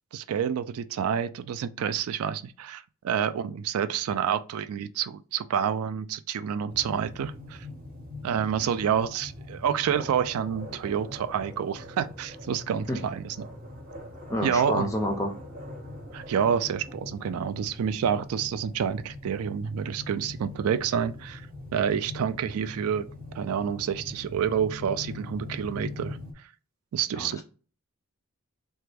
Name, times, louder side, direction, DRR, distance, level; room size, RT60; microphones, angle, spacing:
voice 1, 0.1-7.7 8.2-13.4 14.4-14.9 16.1-21.4 21.7-23.0 23.3-26.2 26.9-27.4, right 8 dB, 85° right, 0.3 m, -28 dB
sound 1, 6.7-26.3, left 2 dB, 40° right, 0.7 m, -42 dB
voice 2, 14.3-15.3 27.1-27.4, left 1 dB, 15° left, 0.4 m, -29 dB
3.3 x 2.2 x 3.3 m
head